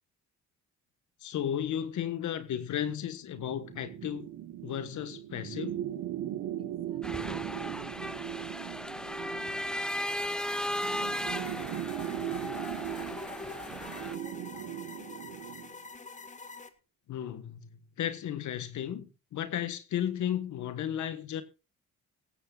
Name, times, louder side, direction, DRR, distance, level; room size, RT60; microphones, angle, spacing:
voice 1, 1.2-4.3 4.6-5.8 17.1-21.4, left 10 dB, 70° left, 1.5 m, -34 dB
sound 1, 3.3-15.7, right 12 dB, 80° right, 1.3 m, -39 dB
voice 2, 6.6-7.4 13.2-15.9, right 2 dB, 20° right, 5.0 m, -58 dB
sound 2, 7.0-14.1, equal, 5° left, 0.8 m, -36 dB
sound 3, 9.9-16.7, left 3 dB, 25° left, 1.8 m, -46 dB
17.5 x 16.0 x 2.4 m
cardioid pair, 90°, 30 cm